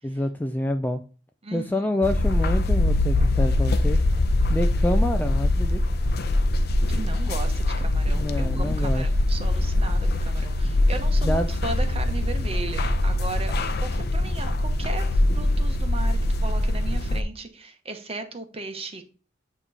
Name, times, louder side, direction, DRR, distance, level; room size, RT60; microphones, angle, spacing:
voice 1, 0.0-1.0 1.5-4.0 4.5-5.8 8.1-9.1 11.2-11.5, left 1 dB, 10° left, 0.3 m, -27 dB
voice 2, 1.4-1.8 6.9-19.0, right 3 dB, 30° right, 1.0 m, -36 dB
sound 1, 2.0-17.2, left 1 dB, 55° left, 0.6 m, -23 dB
8.9 x 3.0 x 4.1 m
head